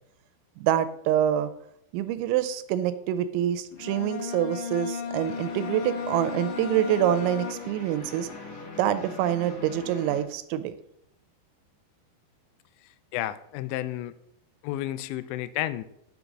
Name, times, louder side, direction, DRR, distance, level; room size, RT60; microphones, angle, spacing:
voice 1, 0.6-1.5 1.9-8.3 8.8-10.8, right 11 dB, 90° right, 13 dB, 3.0 m, -26 dB
Bowed string instrument, 3.7-8.0, left 7 dB, 70° left, 2.2 m, -35 dB
sound 1, 5.2-10.2, left 3 dB, 45° left, 2.7 m, -42 dB
voice 2, 12.8-14.1 14.6-15.9, left 14 dB, 85° left, 14 dB, 2.8 m, -32 dB
6.7 x 5.2 x 6.0 m, 0.75 s
omnidirectional pair, 5.2 m